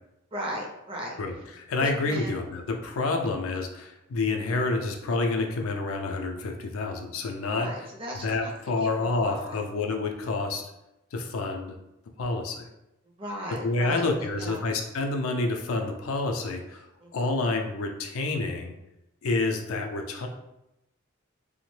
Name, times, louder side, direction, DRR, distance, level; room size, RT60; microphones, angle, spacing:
voice 1, 0.3-1.2 1.8-2.3 7.5-8.5 8.8-9.5 13.2-14.1 14.4-14.7 17.0-17.2, equal, 25° right, -1 dB, 0.4 m, -36 dB
voice 2, 1.2-7.9 8.1-10.7 11.1-11.8 12.2-12.7 13.6-16.9 17.1-18.7 19.2-20.3, left 3 dB, 85° left, 3 dB, 0.4 m, -28 dB
2.8 x 2.1 x 3.1 m, 0.91 s
head